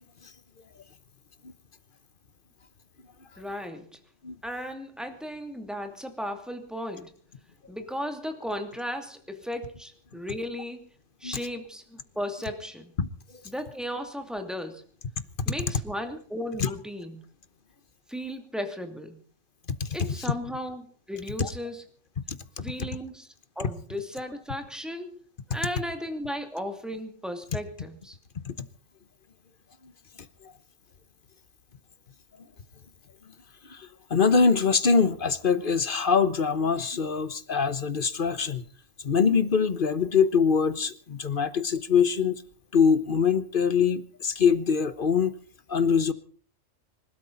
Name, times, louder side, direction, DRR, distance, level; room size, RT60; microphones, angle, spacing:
voice 1, 3.4-4.0 4.4-7.1 7.7-10.9 11.2-12.9 13.4-14.9 15.5-17.2 18.1-19.2 19.9-21.9 22.6-23.3 23.6-28.2, equal, ahead, 5 dB, 2.5 m, -35 dB
voice 2, 22.3-22.7 28.5-28.6 33.7-38.6 39.0-42.4 42.7-45.3 45.7-46.1, left 6 dB, 45° left, 13 dB, 1.2 m, -23 dB
26.0 x 13.0 x 4.0 m, 0.43 s
omnidirectional pair, 1.3 m